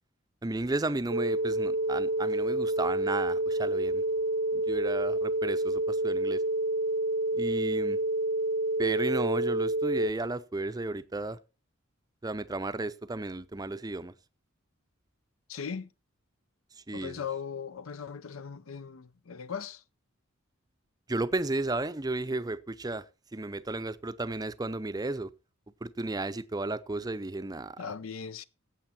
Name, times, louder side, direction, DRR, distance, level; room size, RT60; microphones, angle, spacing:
voice 1, 0.4-4.0 4.5-6.4 7.3-8.0 8.8-11.4 12.2-14.1 16.9-17.2 21.1-23.0 23.3-25.3 25.8-27.8, right 2 dB, 20° right, 0.5 m, -33 dB
sound 1, 1.1-10.1, right 1 dB, 70° right, 0.8 m, -28 dB
voice 2, 15.5-15.9 16.9-19.8 27.8-28.4, left 6 dB, 75° left, 0.6 m, -38 dB
15.0 x 8.2 x 4.2 m
head